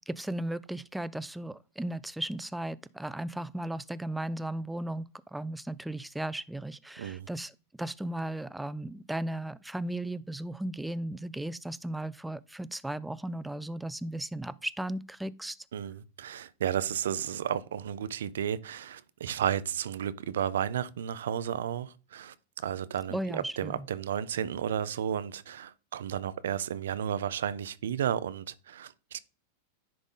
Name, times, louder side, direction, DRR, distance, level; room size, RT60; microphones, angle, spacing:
voice 1, 0.1-15.6 23.1-23.9, right 1 dB, 5° right, 0.3 m, -36 dB
voice 2, 15.7-22.3 22.6-29.2, right 9 dB, 90° right, 0.5 m, -33 dB
10.5 x 3.8 x 3.8 m
supercardioid pair, 135°, 0 cm